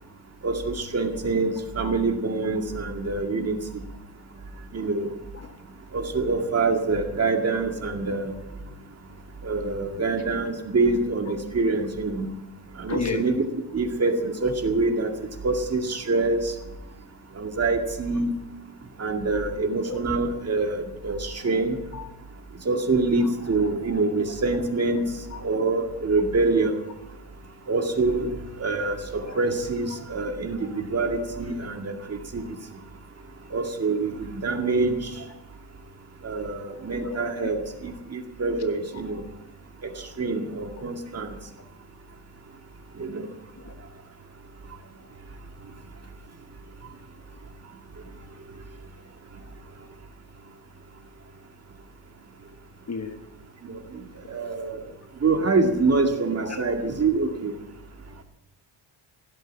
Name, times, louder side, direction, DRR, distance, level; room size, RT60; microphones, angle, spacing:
voice 1, 0.4-3.8 4.7-5.1 5.9-8.3 9.4-12.3 12.8-13.4 13.7-15.1 15.4-16.5 17.4-18.3 19.0-21.8 22.7-25.0 25.4-26.8 27.7-28.3 28.6-32.4 33.5-35.1 36.2-37.6 37.8-39.2 40.2-41.3 43.0-43.3 53.6-53.8 54.3-54.8 55.2-57.5, right 3 dB, 30° right, 4 dB, 2.2 m, -25 dB
voice 2, 12.9-13.2 19.9-20.0 21.9-22.1 23.2-23.3 28.2-28.3 37.0-37.5 43.7-43.8 52.9-53.2, left 5 dB, 35° left, 6 dB, 1.3 m, -32 dB
16.5 x 8.3 x 9.7 m, 0.96 s
cardioid pair, 130°, 48 cm